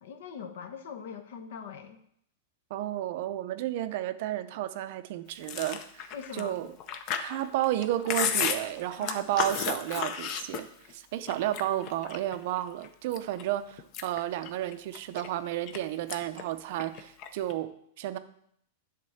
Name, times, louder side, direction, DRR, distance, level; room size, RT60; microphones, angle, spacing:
voice 1, 0.0-2.0 6.1-6.6 9.0-9.3 11.4-11.6, left 7 dB, 60° left, 6 dB, 1.0 m, -42 dB
voice 2, 2.7-6.7 7.2-18.2, right 13 dB, 45° right, 11 dB, 0.6 m, -32 dB
Chewing mastication, 5.4-10.9 11.3-12.4 12.8-13.4 13.8-15.8 16.1-16.4 16.7-17.5, left 8 dB, 30° left, 0.6 m, -33 dB
11.0 x 3.7 x 7.1 m, 0.71 s
supercardioid pair, 175°, 0 cm